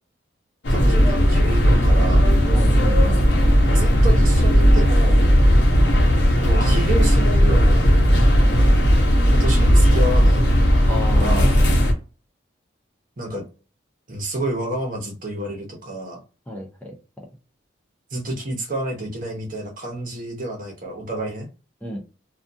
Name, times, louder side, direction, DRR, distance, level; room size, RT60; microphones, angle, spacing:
sound 1, 0.6-11.9, equal, 60° left, 0.8 m, -16 dB
voice 1, 0.7-2.3 3.7-5.3 6.5-7.9 9.3-10.5 11.1-11.5 13.2-13.4 14.1-16.2 18.1-21.5, right 1 dB, 45° right, 0.9 m, -29 dB
voice 2, 2.5-3.2 8.1-8.3 10.9-11.5 16.5-17.0 21.8-22.0, left 1 dB, 5° left, 0.5 m, -31 dB
2.4 x 2.3 x 2.6 m
head